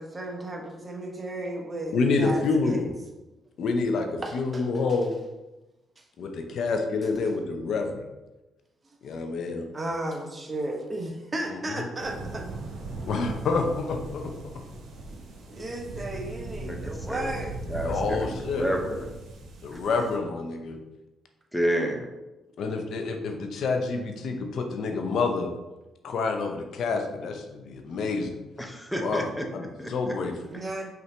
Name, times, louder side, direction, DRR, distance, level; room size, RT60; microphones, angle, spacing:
voice 1, 0.0-2.8 4.2-4.8 6.0-6.1 9.7-12.4 15.5-17.6 30.5-30.9, right 1 dB, 25° right, 1 dB, 0.9 m, -34 dB
voice 2, 1.9-2.9 3.6-5.1 6.2-8.0 9.0-9.7 11.5-11.9 13.1-14.3 17.8-18.7 19.6-20.8 22.6-25.5 26.0-28.4 29.0-30.3, left 4 dB, 65° left, 4 dB, 0.6 m, -28 dB
sound 1, 12.0-20.2, right 2 dB, 75° right, 0.9 m, -38 dB
voice 3, 16.6-17.3 17.7-19.1 21.5-22.1 28.6-30.1, equal, 5° left, 2 dB, 0.6 m, -30 dB
5.6 x 2.7 x 3.3 m, 1.0 s
cardioid pair, 90°, 0 cm